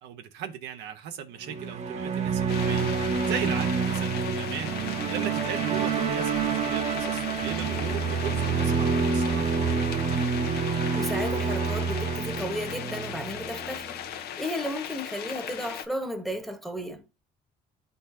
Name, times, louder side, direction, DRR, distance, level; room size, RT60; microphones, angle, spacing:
voice 1, 0.0-2.9 3.3-9.6, right 8 dB, 85° right, 1.0 m, -37 dB
sound 1, 1.4-13.9, right 5 dB, 40° right, 1.0 m, -28 dB
sound 2, 2.2-10.0, right 7 dB, 60° right, 0.7 m, -41 dB
sound 3, 2.5-15.9, left 9 dB, 70° left, 0.8 m, -37 dB
voice 2, 10.9-17.0, equal, ahead, 1.1 m, -34 dB
11.0 x 4.0 x 2.7 m
cardioid pair, 110°, 17 cm